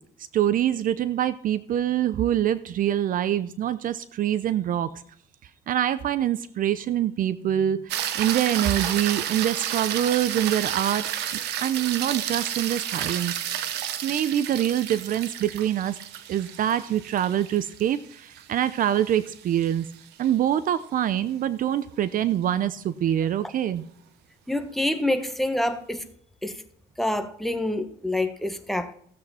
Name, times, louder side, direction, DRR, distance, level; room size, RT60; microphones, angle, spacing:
voice 1, 0.3-4.9 5.7-11.1 11.6-13.3 14.0-16.0 16.3-19.9 20.2-23.8, right 11 dB, 55° right, 15 dB, 0.6 m, -25 dB
sound 1, 7.9-20.3 24.8-24.9, right 10 dB, 85° right, 1.1 m, -31 dB
voice 2, 24.5-26.0 26.4-26.6 27.0-28.9, left 1 dB, ahead, 7 dB, 1.3 m, -27 dB
16.0 x 8.0 x 4.2 m, 0.63 s
cardioid pair, 110°, 17 cm